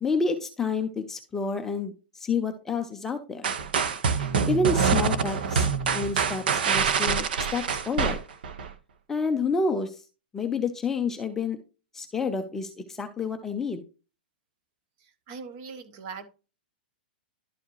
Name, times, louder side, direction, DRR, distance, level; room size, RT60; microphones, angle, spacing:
voice 1, 0.0-3.5 4.5-5.7 5.9-8.2 9.1-10.0 10.3-11.6 11.9-13.8, left 4 dB, 5° left, 5 dB, 0.5 m, -29 dB
sound 1, 3.4-8.7, right 6 dB, 65° right, 1.1 m, -25 dB
voice 2, 15.3-16.3, right 5 dB, 35° right, 10 dB, 1.2 m, -40 dB
11.5 x 4.9 x 3.0 m, 0.32 s
supercardioid pair, 175°, 5 cm